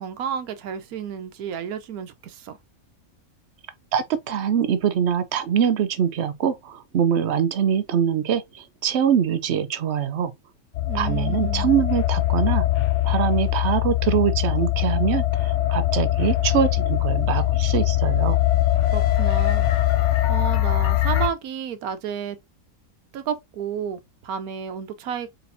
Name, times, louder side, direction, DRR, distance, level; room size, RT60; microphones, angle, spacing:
voice 1, 0.0-2.6 10.9-11.7 18.9-19.9 20.3-22.4 23.1-25.3, right 8 dB, 85° right, 1.2 m, -31 dB
voice 2, 3.9-10.3 10.9-12.6 13.0-18.4, right 8 dB, 60° right, 0.7 m, -23 dB
sound 1, 10.7-21.3, left 15 dB, 65° left, 0.8 m, -22 dB
4.2 x 3.9 x 2.7 m
omnidirectional pair, 1.5 m